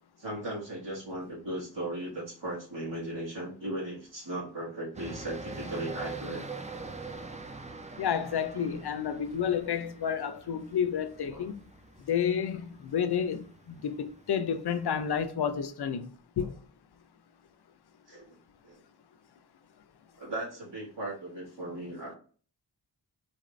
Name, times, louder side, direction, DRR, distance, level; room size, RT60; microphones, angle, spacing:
voice 1, 0.2-6.4 11.3-11.5 16.4-16.5 18.1-18.4 18.6-18.8 20.2-22.2, right 1 dB, 85° right, 1.7 m, -37 dB
sound 1, 4.9-15.3, right 3 dB, 20° right, 0.4 m, -44 dB
voice 2, 8.0-11.5 12.1-16.1 16.4-16.5, left 8 dB, 65° left, 0.5 m, -30 dB
4.1 x 2.5 x 3.1 m
wide cardioid pair, 60°, 42 cm